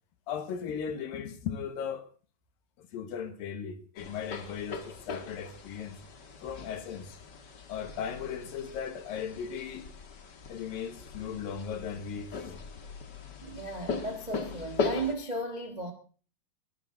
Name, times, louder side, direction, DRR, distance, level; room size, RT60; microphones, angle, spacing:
voice 1, 0.3-2.1 2.8-6.0 6.4-7.2 7.7-9.9 10.5-12.6, left 7 dB, 90° left, 3.3 m, -37 dB
sound 1, 4.0-15.1, left 4 dB, 45° left, 1.6 m, -39 dB
voice 2, 13.4-15.9, right 2 dB, 55° right, 0.4 m, -35 dB
22.0 x 12.5 x 3.8 m
omnidirectional pair, 3.9 m